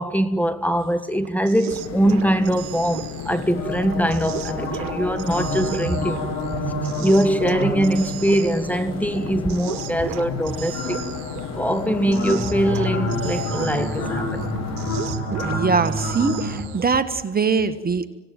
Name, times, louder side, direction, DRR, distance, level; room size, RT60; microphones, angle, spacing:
voice 1, 0.0-6.3 7.0-11.0 11.5-14.5, right 1 dB, 5° left, 1.6 m, -22 dB
sound 1, 0.8-17.0, right 14 dB, 75° right, 1.2 m, -36 dB
sound 2, 1.7-15.0, left 10 dB, 50° left, 1.2 m, -36 dB
sound 3, 3.5-16.6, left 1 dB, 85° left, 5.8 m, -29 dB
voice 2, 15.4-18.1, right 5 dB, 25° right, 1.5 m, -22 dB
26.0 x 17.5 x 9.2 m
hypercardioid pair, 70°, 33 cm